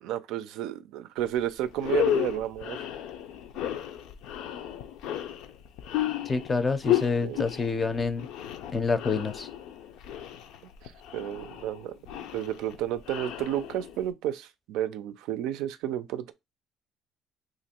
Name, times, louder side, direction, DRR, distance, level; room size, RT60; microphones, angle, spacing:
voice 1, 0.0-2.9 7.2-7.4 11.1-11.9 12.3-16.3, right 11 dB, 80° right, 0.4 m, -31 dB
sound 1, 1.3-1.4 1.7-14.1, left 11 dB, 75° left, 0.5 m, -33 dB
voice 2, 6.3-8.3 8.7-9.5, left 4 dB, 20° left, 0.5 m, -27 dB
3.0 x 2.5 x 4.3 m
cardioid pair, 145°, 0 cm